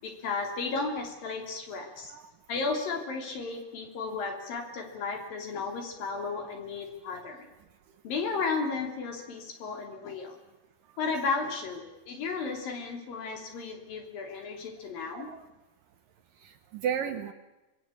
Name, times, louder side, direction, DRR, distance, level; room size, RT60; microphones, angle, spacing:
voice 1, 0.0-2.1 2.5-7.5 8.0-10.4 11.0-15.3, left 4 dB, 60° left, 3 dB, 4.8 m, -34 dB
voice 2, 15.0-15.5 16.4-17.3, right 8 dB, 65° right, 8 dB, 2.4 m, -34 dB
26.5 x 21.0 x 8.6 m, 1.0 s
omnidirectional pair, 4.8 m